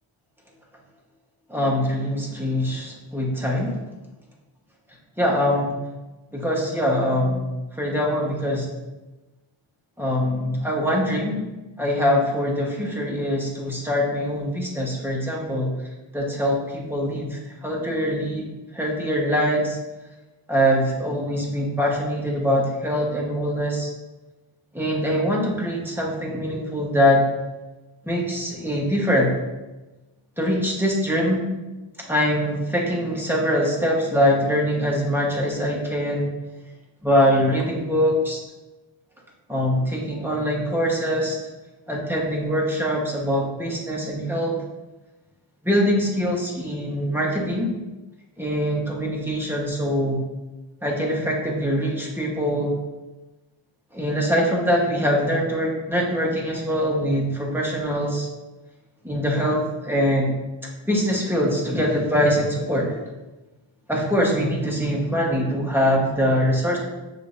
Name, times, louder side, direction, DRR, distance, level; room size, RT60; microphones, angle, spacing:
voice 1, 1.5-3.7 5.2-5.7 6.3-8.7 10.0-11.4 11.8-15.7 16.1-18.5 18.7-19.8 20.5-23.9 24.7-27.2 28.0-29.3 30.4-31.4 32.0-36.3 37.0-38.4 39.5-41.4 41.9-44.6 45.6-47.7 48.4-50.2 50.8-52.7 53.9-58.3 59.0-60.4 60.9-63.0 63.9-66.8, equal, 5° right, -3 dB, 1.1 m, -23 dB
6.7 x 2.8 x 2.6 m, 1.1 s
cardioid pair, 45°, 48 cm